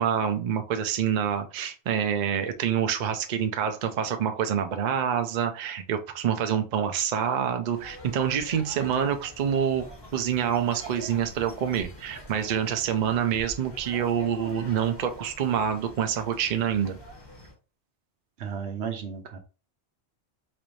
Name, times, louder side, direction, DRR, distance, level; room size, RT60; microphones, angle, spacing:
voice 1, 0.0-9.9 10.1-17.0, right 8 dB, 55° right, 7 dB, 0.5 m, -27 dB
sound 1, 7.7-17.5, left 1 dB, 25° left, 0.9 m, -45 dB
voice 2, 18.4-19.4, right 7 dB, 75° right, 7 dB, 1.0 m, -34 dB
4.1 x 2.6 x 3.1 m, 0.33 s
omnidirectional pair, 1.2 m